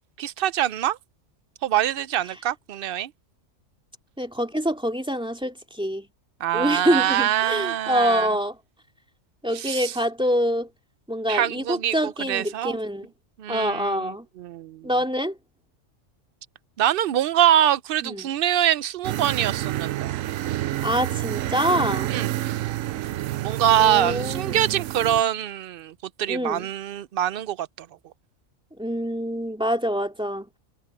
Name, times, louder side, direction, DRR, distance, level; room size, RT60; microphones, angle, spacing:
voice 1, 0.2-1.0 1.6-3.1 6.4-8.3 9.5-9.9 11.3-12.8 13.4-14.9 16.8-20.2 22.1-22.3 23.4-27.9, right 11 dB, 60° right, 0.6 m, -24 dB
voice 2, 4.2-6.1 6.5-8.6 9.4-10.7 11.1-13.1 13.5-14.3 14.8-15.4 18.0-18.3 20.8-22.1 23.8-24.6 26.3-26.7 28.8-30.5, equal, 5° right, 2.5 m, -25 dB
sound 1, 19.0-25.2, right 14 dB, 85° right, 1.0 m, -29 dB
omnidirectional pair, 1.3 m